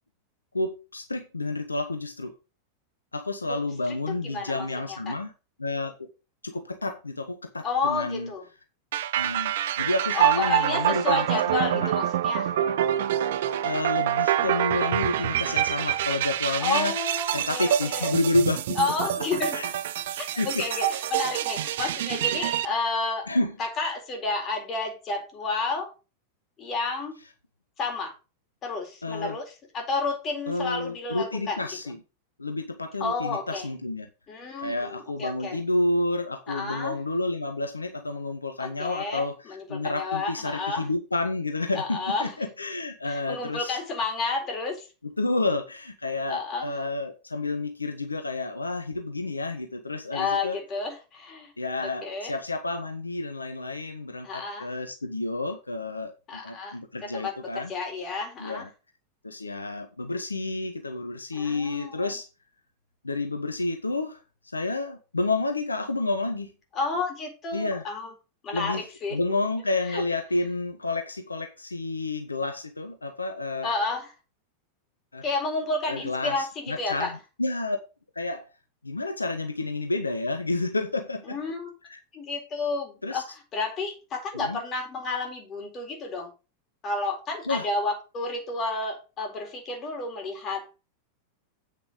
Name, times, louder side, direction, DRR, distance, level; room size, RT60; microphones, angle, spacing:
voice 1, 0.5-2.3 3.1-5.3 5.6-6.1 6.4-8.3 9.1-11.9 13.6-16.9 17.3-19.2 19.5-19.7 20.4-20.9 23.3-23.6 29.0-29.4 30.5-32.0 32.4-34.1 34.6-39.3 39.7-43.8 45.0-50.6 51.6-57.7 58.4-58.7 59.2-62.3 63.0-64.2 64.5-66.5 67.5-67.8 68.5-68.8 69.1-73.7 75.1-75.2 75.9-77.8 78.1-78.5 78.8-81.4 81.9-82.0 83.0-83.2 84.3-84.6 87.5-87.7, left 2 dB, 80° left, 1.1 m, -30 dB
voice 2, 4.1-5.2 7.6-8.5 10.1-12.5 16.6-18.1 18.8-19.6 20.4-23.3 23.6-25.9 26.6-27.2 27.8-28.1 28.6-31.6 33.0-33.7 34.3-35.6 36.5-37.0 38.6-40.8 41.7-42.3 43.0-44.9 46.3-46.7 50.1-51.5 51.8-52.3 54.2-54.7 56.3-56.7 57.0-58.7 61.3-62.1 66.7-68.1 68.4-69.2 69.9-70.0 73.6-74.1 75.2-77.1 81.3-81.7 82.1-83.2 83.5-86.3 86.8-90.7, left 3 dB, 30° left, 4.2 m, -31 dB
sound 1, 8.9-22.7, right 12 dB, 55° right, 0.6 m, -26 dB
8.6 x 6.9 x 5.2 m
figure-of-eight pair, 90°, 0 cm